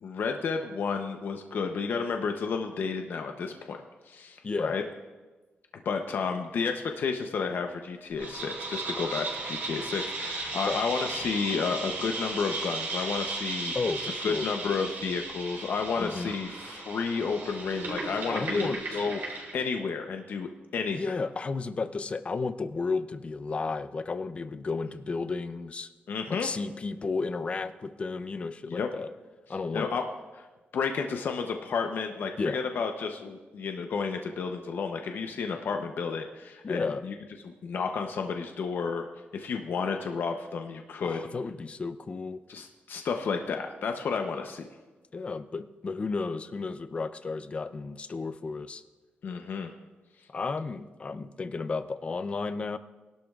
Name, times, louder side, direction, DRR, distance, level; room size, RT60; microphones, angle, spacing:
voice 1, 0.0-3.8 4.1-4.9 5.8-13.7 14.2-18.7 18.9-21.0 26.1-26.5 28.7-28.9 29.7-30.0 30.3-30.5 30.7-37.1 37.4-39.1 39.3-41.3 42.5-44.7 49.2-49.7, left 5 dB, 60° left, 4 dB, 0.7 m, -31 dB
voice 2, 4.4-4.8 10.7-10.8 13.7-14.5 16.0-16.3 18.3-19.0 20.9-25.9 26.3-29.1 29.5-29.9 32.4-32.6 36.6-37.0 41.0-42.4 45.1-48.8 50.3-52.8, left 4 dB, 30° left, 12 dB, 0.5 m, -33 dB
sound 1, 8.2-19.7, right 3 dB, 60° right, 4.8 m, -36 dB
20.0 x 12.0 x 2.4 m, 1.2 s
wide cardioid pair, 145°, 4 cm